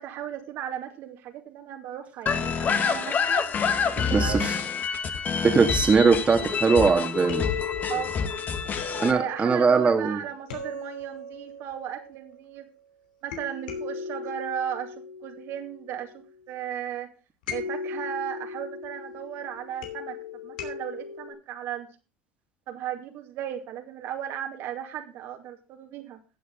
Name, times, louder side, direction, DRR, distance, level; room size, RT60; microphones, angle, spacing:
voice 1, 0.0-3.5 4.0-4.7 7.9-8.1 8.6-12.7 13.2-17.1 17.5-20.2 20.4-21.9 22.7-26.2, right 10 dB, 60° right, 4 dB, 2.4 m, -36 dB
sound 1, 2.3-9.1, left 6 dB, 40° left, 1.4 m, -27 dB
voice 2, 5.4-7.5 9.0-10.2, right 5 dB, 25° right, 4 dB, 2.0 m, -20 dB
sound 2, 6.3-12.7 13.3-16.3 17.5-21.3, left 5 dB, 90° left, 2.9 m, -38 dB
14.5 x 8.1 x 3.8 m, 0.34 s
supercardioid pair, 90°, 5 cm